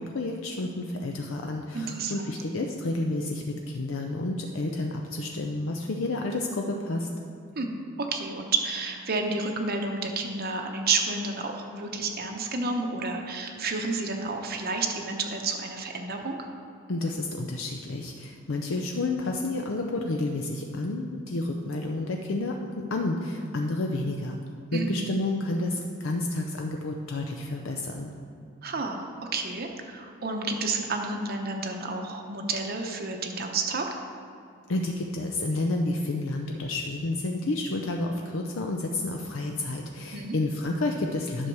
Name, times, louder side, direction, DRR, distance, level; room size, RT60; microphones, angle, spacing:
voice 1, 0.0-7.1 16.9-24.4 24.7-28.1 34.7-41.5, left 2 dB, 75° left, 2 dB, 0.6 m, -30 dB
voice 2, 1.7-2.2 7.6-16.5 24.7-25.1 28.6-33.9 40.1-40.3, right 3 dB, 50° right, 3 dB, 0.8 m, -30 dB
10.0 x 6.3 x 4.7 m, 2.4 s
head